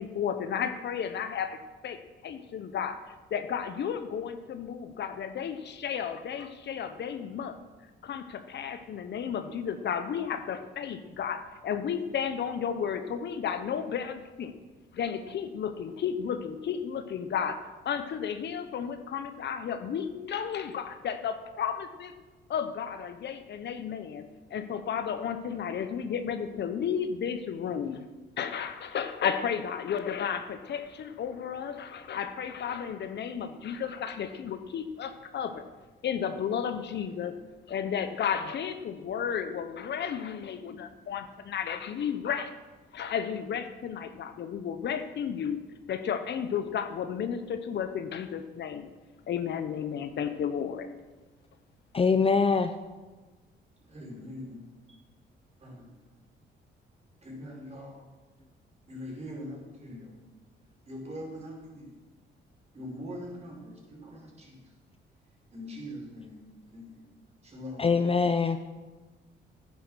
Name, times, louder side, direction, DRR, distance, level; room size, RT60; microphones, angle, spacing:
voice 1, 0.0-3.0 3.3-7.6 8.0-14.5 14.9-22.1 22.5-28.1 28.4-35.6 36.0-37.3 37.7-42.5 42.9-45.6 45.9-48.9 49.3-50.9, left 7 dB, 60° left, 9 dB, 0.9 m, -33 dB
voice 2, 51.9-52.7 67.8-68.6, left 5 dB, 30° left, 9 dB, 0.6 m, -23 dB
voice 3, 53.8-54.6 55.6-55.9 57.2-58.0 58.9-60.1 60.9-62.0 62.7-64.7 65.5-66.4 66.7-67.1 67.4-67.9, left 1 dB, 35° right, -2 dB, 4.8 m, -42 dB
11.0 x 9.7 x 6.2 m, 1.3 s
cardioid pair, 90°, 20 cm